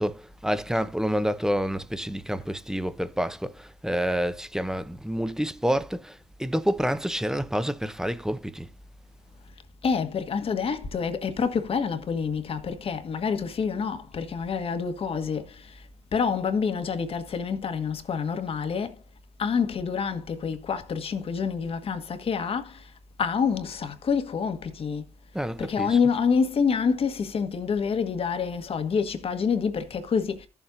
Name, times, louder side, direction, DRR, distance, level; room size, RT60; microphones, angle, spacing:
voice 1, 0.0-8.7 25.3-26.0, equal, 5° right, 0.9 m, -28 dB
voice 2, 9.8-15.6 16.1-19.0 19.4-22.8 23.2-25.0 25.6-30.5, left 6 dB, 55° left, 1.5 m, -27 dB
14.0 x 7.2 x 2.7 m
supercardioid pair, 55°, 12 cm